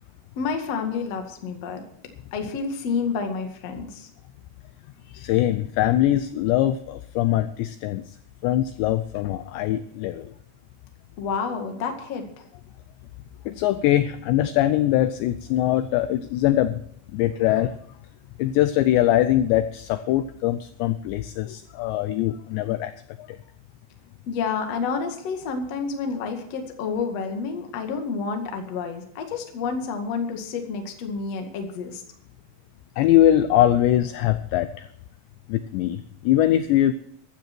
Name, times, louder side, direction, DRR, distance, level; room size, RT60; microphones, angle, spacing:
voice 1, 0.4-1.8 2.3-4.1 11.2-12.4 24.3-32.0, left 5 dB, 50° left, 5 dB, 2.0 m, -29 dB
voice 2, 5.1-8.0 8.4-10.3 13.5-16.8 17.1-17.7 18.4-22.9 23.3-23.4 33.0-34.9 35.5-36.9, left 13 dB, 85° left, 12 dB, 2.5 m, -22 dB
15.0 x 12.5 x 4.5 m, 0.69 s
omnidirectional pair, 5.8 m